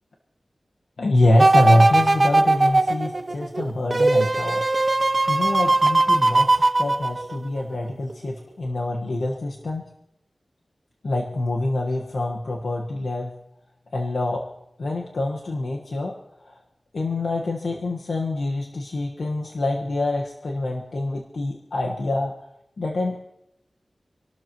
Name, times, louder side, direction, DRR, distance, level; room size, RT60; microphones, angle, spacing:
voice 1, 1.0-4.6 5.3-9.8 11.0-13.3 13.9-14.4 14.8-16.1 16.4-16.5 16.9-22.3 22.8-23.2, left 2 dB, 85° left, -1 dB, 1.4 m, -25 dB
sound 1, 1.4-7.6 8.1-8.2, right 2 dB, 35° right, 0.6 m, -19 dB
27.0 x 12.5 x 3.0 m, 0.82 s
wide cardioid pair, 90°, 0 cm